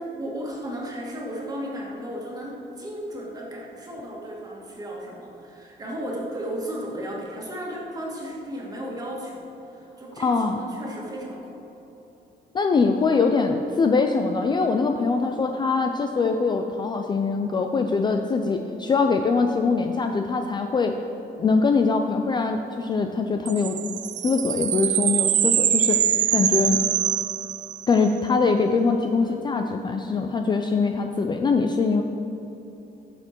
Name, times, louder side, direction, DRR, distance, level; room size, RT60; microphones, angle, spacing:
voice 1, 0.0-11.5 29.2-29.5, equal, 20° right, -3 dB, 1.9 m, -34 dB
voice 2, 10.2-10.6 12.5-21.0 21.4-23.8 24.2-26.0 26.3-26.8 27.9-32.0, left 4 dB, 25° left, 5 dB, 0.4 m, -23 dB
sound 1, 23.5-28.1, right 10 dB, 45° right, 0.4 m, -23 dB
15.5 x 6.7 x 4.5 m, 3.0 s
cardioid pair, 180°, 18 cm